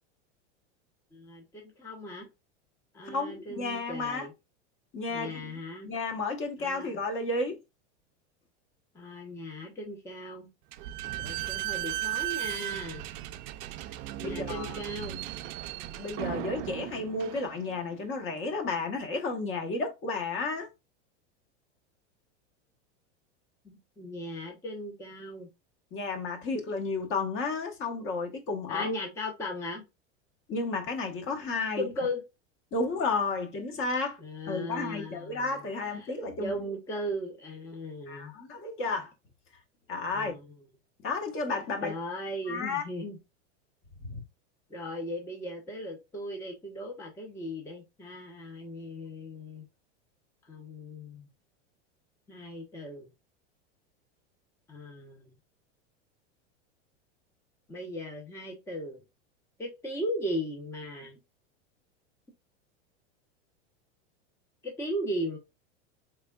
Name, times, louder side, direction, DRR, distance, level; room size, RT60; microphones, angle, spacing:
voice 1, 1.1-2.3 2.9-4.3 5.1-5.9 6.6-7.0 8.9-10.5 11.2-13.0 14.2-15.2 23.6-25.5 28.7-29.8 31.8-32.2 34.2-35.6 35.9-36.1 36.4-38.3 40.1-40.5 41.8-43.2 44.7-49.7 50.5-51.3 52.3-53.1 54.7-55.3 57.7-59.0 59.6-61.2 64.6-65.4, equal, 10° left, 0.6 m, -37 dB
voice 2, 3.0-4.3 4.9-5.5 5.8-7.6 14.2-14.8 15.9-20.7 25.9-28.9 30.5-31.9 32.7-34.2 34.5-36.7 38.1-39.1 39.9-40.3 41.0-41.9 42.5-42.8 44.0-44.2, left 3 dB, 35° left, 1.0 m, -32 dB
Slam / Squeak, 10.7-18.0, right 15 dB, 45° right, 0.4 m, -36 dB
3.6 x 3.3 x 2.2 m
hypercardioid pair, 115°, 36 cm